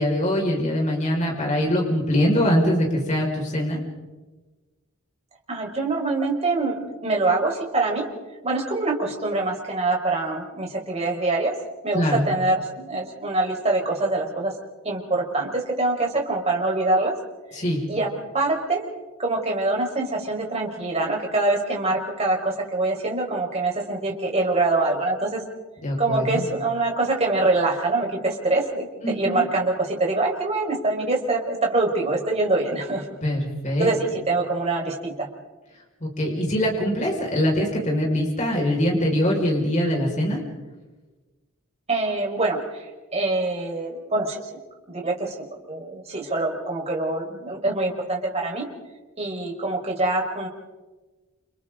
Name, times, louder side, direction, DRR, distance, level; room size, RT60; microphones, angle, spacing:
voice 1, 0.0-3.8 11.9-12.3 17.5-17.8 25.8-26.4 29.0-29.4 33.2-33.9 36.0-40.4, equal, 35° left, -1 dB, 5.4 m, -23 dB
voice 2, 5.5-8.1 8.4-11.5 11.8-14.5 14.8-17.1 17.9-18.1 18.3-18.8 19.2-25.4 26.0-33.1 33.8-35.3 41.9-42.8 43.1-44.6 44.9-48.7 49.2-50.5, right 2 dB, 30° right, 0 dB, 4.9 m, -24 dB
29.5 x 29.0 x 3.9 m, 1.2 s
head